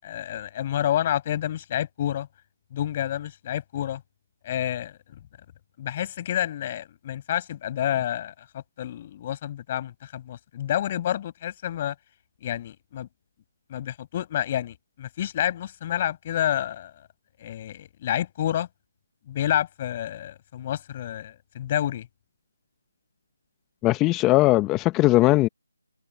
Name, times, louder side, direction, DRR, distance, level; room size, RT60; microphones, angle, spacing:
voice 1, 0.0-2.3 2.7-4.0 4.4-5.2 5.8-11.9 12.4-13.1 13.7-16.9 17.4-18.7 19.3-22.1, left 11 dB, 30° left, 6.4 m, -29 dB
voice 2, 23.8-25.5, left 19 dB, 15° left, 1.1 m, -19 dB
figure-of-eight pair, 160°, 0 cm